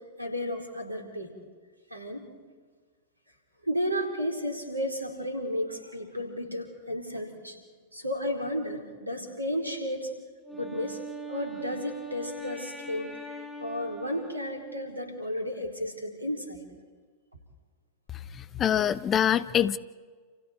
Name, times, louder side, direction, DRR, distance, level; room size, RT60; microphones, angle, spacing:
voice 1, 0.2-1.3 1.9-2.3 3.7-7.6 7.9-10.1 10.5-11.0 11.3-13.2 13.6-16.6, equal, 90° right, 2 dB, 4.4 m, -33 dB
Wind instrument woodwind instrument, 10.4-15.2, right 3 dB, 5° left, 6.2 m, -41 dB
voice 2, 18.1-19.8, left 9 dB, 30° left, 16 dB, 1.0 m, -25 dB
29.5 x 29.0 x 4.6 m, 1.5 s
figure-of-eight pair, 95°, 0 cm